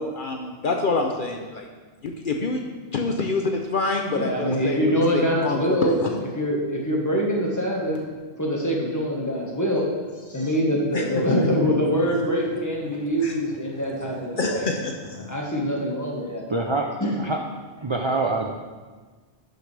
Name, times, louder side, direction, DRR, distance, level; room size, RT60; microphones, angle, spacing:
voice 1, 0.0-1.7 2.0-2.6 2.9-6.2 10.9-11.7 13.2-13.3 14.4-15.4, left 3 dB, 55° left, 3 dB, 0.8 m, -27 dB
voice 2, 4.1-5.9 6.3-8.0 8.4-9.9 10.3-14.7 15.3-16.4 17.0-17.1, equal, 15° left, -2 dB, 1.5 m, -24 dB
voice 3, 16.5-17.4 17.8-18.5, right 2 dB, 35° right, 2 dB, 0.5 m, -25 dB
11.5 x 6.6 x 3.4 m, 1.4 s
omnidirectional pair, 1.1 m